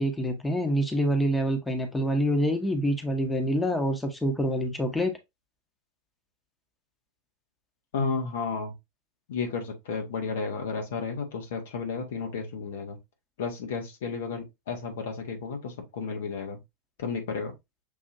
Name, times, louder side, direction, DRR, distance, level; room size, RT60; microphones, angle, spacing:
voice 1, 0.0-5.1, equal, 10° left, 1.0 m, -26 dB
voice 2, 7.9-8.7 9.3-13.0 13.4-16.6 17.0-17.5, left 5 dB, 60° left, 1.2 m, -32 dB
6.8 x 2.7 x 2.7 m
figure-of-eight pair, 90°, 0 cm